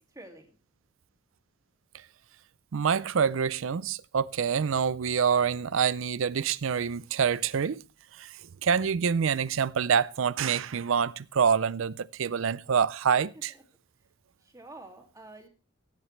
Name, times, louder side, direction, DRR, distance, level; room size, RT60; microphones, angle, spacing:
voice 1, 0.1-0.5 13.3-13.6 14.4-15.5, right 2 dB, 15° right, 2.5 m, -48 dB
voice 2, 2.7-7.8 8.2-8.3 8.6-13.5, right 6 dB, 65° right, 0.5 m, -26 dB
17.5 x 8.0 x 3.2 m
head